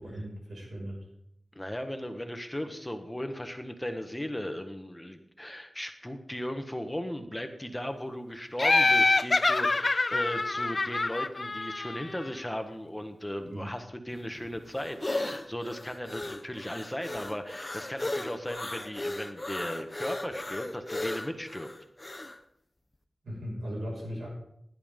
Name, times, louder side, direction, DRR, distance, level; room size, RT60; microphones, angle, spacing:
voice 1, 0.0-1.0 13.5-13.7 23.2-24.3, equal, 85° right, -3 dB, 6.0 m, -37 dB
voice 2, 1.5-21.7, equal, 15° left, 6 dB, 1.5 m, -37 dB
Laughter, 8.6-12.2, left 3 dB, 50° left, 0.4 m, -25 dB
sound 1, 14.1-22.4, left 2 dB, 30° left, 1.1 m, -36 dB
17.5 x 11.0 x 3.8 m, 0.76 s
cardioid pair, 50°, 0 cm